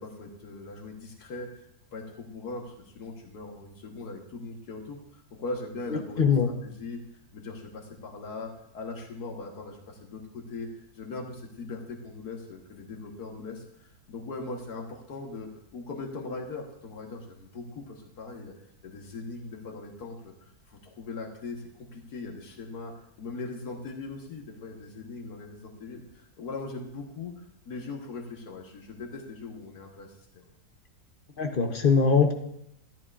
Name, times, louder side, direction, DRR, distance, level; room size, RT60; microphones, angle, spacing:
voice 1, 0.0-6.3 6.6-10.7 11.0-18.5 18.8-21.6 21.9-30.4, left 3 dB, 80° left, 1 dB, 1.8 m, -40 dB
voice 2, 5.9-6.5 31.4-32.3, left 5 dB, 45° left, 5 dB, 0.8 m, -22 dB
13.5 x 10.5 x 2.4 m, 0.75 s
omnidirectional pair, 1.7 m